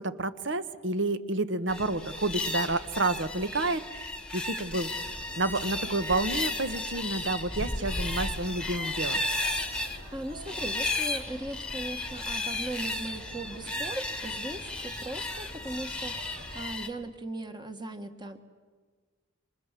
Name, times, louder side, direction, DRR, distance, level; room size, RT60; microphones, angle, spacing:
voice 1, 0.0-4.9 5.4-9.2, right 2 dB, 60° right, 12 dB, 1.2 m, -30 dB
sound 1, 1.7-16.9, left 2 dB, 5° left, 1.4 m, -34 dB
sound 2, 4.8-16.7, equal, 80° right, 7.1 m, -48 dB
voice 2, 9.8-18.4, right 1 dB, 20° right, 7 dB, 1.6 m, -39 dB
28.0 x 25.0 x 7.6 m, 1.5 s
head